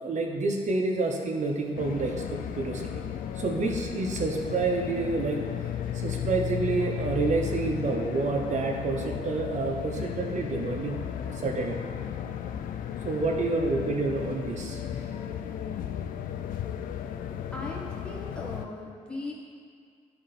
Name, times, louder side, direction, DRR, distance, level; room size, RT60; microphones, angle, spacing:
voice 1, 0.0-3.0 3.4-5.5 5.9-11.0 11.3-11.9 13.0-14.8, right 3 dB, 60° right, 2 dB, 1.0 m, -28 dB
sound 1, 1.8-18.7, left 9 dB, 85° left, 0.4 m, -34 dB
voice 2, 17.5-19.3, left 2 dB, 5° left, -4 dB, 1.8 m, -38 dB
11.0 x 3.9 x 4.2 m, 2.1 s
cardioid pair, 70°, 14 cm